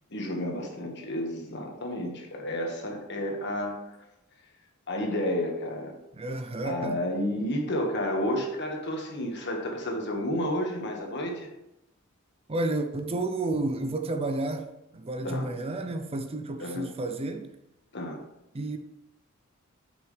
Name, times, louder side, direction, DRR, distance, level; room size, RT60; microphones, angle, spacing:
voice 1, 0.1-3.8 4.9-5.9 6.6-11.5 15.2-15.5 16.6-16.9 17.9-18.2, left 1 dB, 55° left, 1.6 m, -31 dB
voice 2, 6.1-7.0 12.5-17.5 18.5-18.8, right 2 dB, 30° right, 0.5 m, -31 dB
9.0 x 6.2 x 3.3 m
head